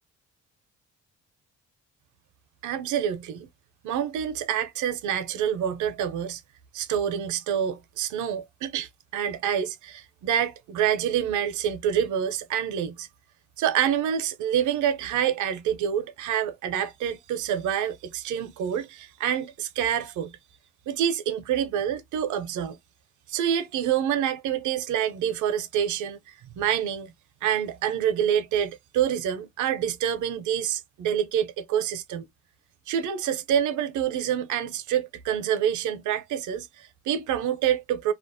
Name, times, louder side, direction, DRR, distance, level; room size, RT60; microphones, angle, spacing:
voice 1, 2.6-3.5 3.8-6.4 6.7-13.1 13.6-20.4 20.9-22.8 23.3-26.2 26.6-27.1 27.4-32.3 32.9-38.1, right 9 dB, 75° right, 0.6 m, -27 dB
2.4 x 2.0 x 2.5 m
cardioid pair, 90°, 30 cm